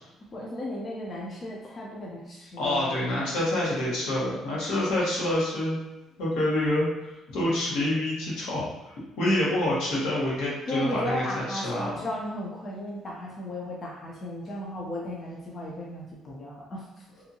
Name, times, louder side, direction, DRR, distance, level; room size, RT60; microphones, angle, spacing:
voice 1, 0.3-3.4 10.7-17.0, left 1 dB, 30° left, -3 dB, 0.5 m, -35 dB
voice 2, 2.6-5.8 6.2-11.9, left 1 dB, 85° left, -6 dB, 1.2 m, -27 dB
2.7 x 2.5 x 2.7 m, 0.99 s
cardioid pair, 150°, 0 cm